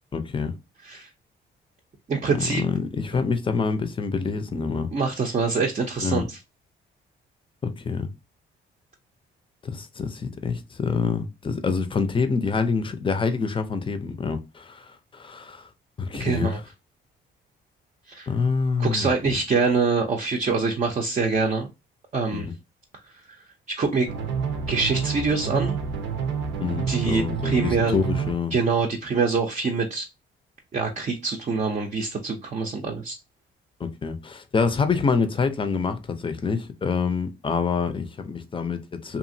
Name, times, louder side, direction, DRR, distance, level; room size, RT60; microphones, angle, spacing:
voice 1, 0.1-0.5 2.4-4.9 6.0-6.3 7.6-8.1 9.7-15.7 16.0-16.6 18.3-19.1 22.3-22.5 26.6-28.5 33.8-39.2, left 5 dB, 25° left, 0.6 m, -26 dB
voice 2, 2.1-2.6 4.9-6.4 16.2-16.6 18.1-18.3 18.8-21.7 22.1-22.5 23.7-24.1 24.7-25.7 26.9-28.0 28.5-30.1 30.7-33.2, right 4 dB, 35° right, 0.6 m, -25 dB
sound 1, 24.1-28.3, right 6 dB, 80° right, 0.6 m, -28 dB
2.9 x 2.5 x 2.6 m
cardioid pair, 90°, 20 cm